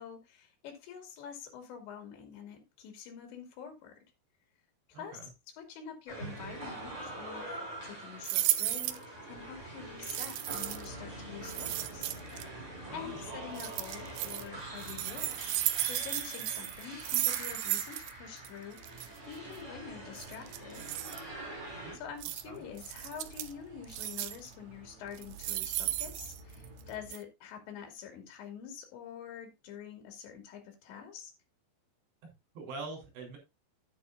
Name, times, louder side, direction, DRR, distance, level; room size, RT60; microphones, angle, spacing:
voice 1, 0.0-4.0 4.9-9.0 9.2-12.2 12.9-15.4 15.8-18.8 19.3-20.9 21.9-31.3, left 7 dB, 80° left, 4.6 m, -46 dB
voice 2, 4.9-5.3 12.9-13.3 21.8-22.0 22.4-22.6 32.2-33.4, right 3 dB, 70° right, 5.9 m, -45 dB
sound 1, 6.1-22.0, right 1 dB, 15° right, 4.5 m, -45 dB
sound 2, 8.2-9.0 10.0-10.9 11.4-12.4 13.5-14.4 14.8-18.1 18.4-18.5 18.8-19.1 20.2-21.2 22.2-22.4 22.8-23.5 23.9-24.5 25.1-26.8 27.1-27.2, right 15 dB, 90° right, 2.0 m, -34 dB
sound 3, 10.5-27.1, right 3 dB, 50° right, 4.2 m, -52 dB
11.0 x 10.5 x 2.6 m
omnidirectional pair, 5.1 m